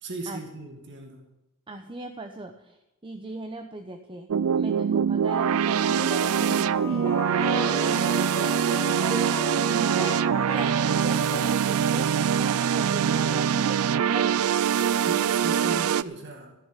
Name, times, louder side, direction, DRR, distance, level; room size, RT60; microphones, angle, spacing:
voice 1, 0.0-1.2 15.0-16.5, right 2 dB, 55° right, 3 dB, 2.0 m, -37 dB
voice 2, 1.7-4.3 4.5-7.1 7.6-14.5, right 2 dB, 25° right, 5 dB, 0.8 m, -38 dB
sound 1, 4.3-16.0, right 8 dB, 70° right, 0.4 m, -24 dB
sound 2, 5.7-11.4, left 2 dB, 15° left, 3.0 m, -35 dB
14.5 x 7.0 x 9.8 m, 0.93 s
head